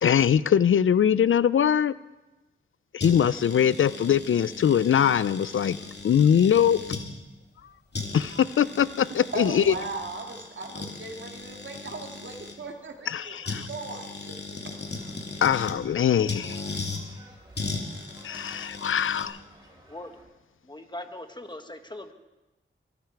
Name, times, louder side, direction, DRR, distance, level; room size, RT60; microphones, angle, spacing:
voice 1, 0.0-1.9 2.9-5.8 6.0-6.8 8.1-9.7 13.1-13.7 15.4-16.6 18.2-19.4, left 8 dB, 70° left, 18 dB, 0.4 m, -22 dB
sound 1, 3.0-7.1 7.6-7.7 7.9-12.5 13.4-15.8 16.3-17.0 17.5-19.2, left 3 dB, 55° left, 2.5 m, -37 dB
voice 2, 9.3-14.6, right 3 dB, 65° right, 3 dB, 2.2 m, -38 dB
sound 2, 14.5-20.2, right 1 dB, 20° right, 7.2 m, -53 dB
voice 3, 20.6-22.1, left 1 dB, 20° left, 7 dB, 1.5 m, -40 dB
23.5 x 12.0 x 4.6 m, 1.1 s
cardioid pair, 60°, 21 cm